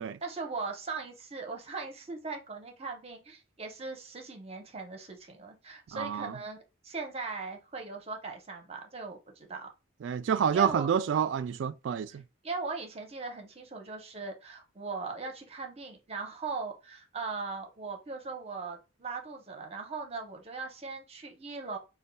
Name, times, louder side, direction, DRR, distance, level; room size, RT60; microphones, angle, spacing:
voice 1, 0.2-9.7 10.2-10.9 12.1-21.8, right 4 dB, 30° right, 0.7 m, -39 dB
voice 2, 5.9-6.3 10.0-12.2, right 7 dB, 70° right, 0.3 m, -28 dB
5.2 x 2.2 x 2.2 m
head